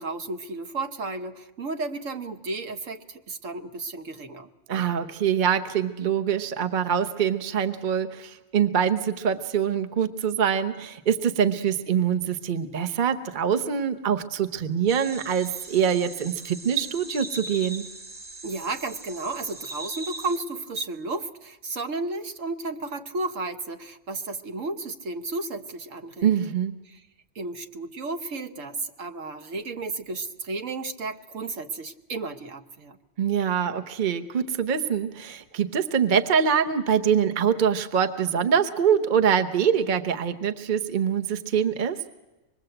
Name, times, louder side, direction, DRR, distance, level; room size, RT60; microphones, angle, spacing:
voice 1, 0.0-4.5 18.4-26.3 26.9-27.0 27.3-33.0, right 3 dB, 65° right, 7 dB, 1.5 m, -33 dB
voice 2, 4.7-17.8 26.2-26.7 33.2-42.0, right 7 dB, 40° right, 7 dB, 1.0 m, -24 dB
sound 1, 14.9-20.4, right 2 dB, 20° right, 1.4 m, -40 dB
25.5 x 21.0 x 7.9 m, 1.0 s
omnidirectional pair, 1.5 m